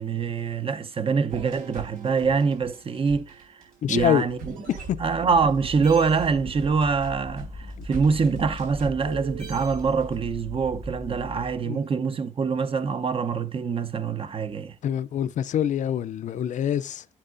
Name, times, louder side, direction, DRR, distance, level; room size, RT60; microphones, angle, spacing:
voice 1, 0.0-4.4 5.0-14.7, right 5 dB, 40° right, 0.7 m, -25 dB
sound 1, 1.3-5.5 5.8-10.2, right 5 dB, 85° right, 4.4 m, -41 dB
voice 2, 3.8-4.2 4.7-5.0 5.3-5.4 7.8-7.9 11.6-11.8 14.8-17.0, left 9 dB, 65° left, 0.4 m, -25 dB
sound 2, 4.9-11.7, left 2 dB, 85° left, 0.8 m, -41 dB
sound 3, 5.6-11.3, right 2 dB, 20° right, 1.1 m, -45 dB
8.7 x 7.4 x 2.5 m
cardioid pair, 90°, 14 cm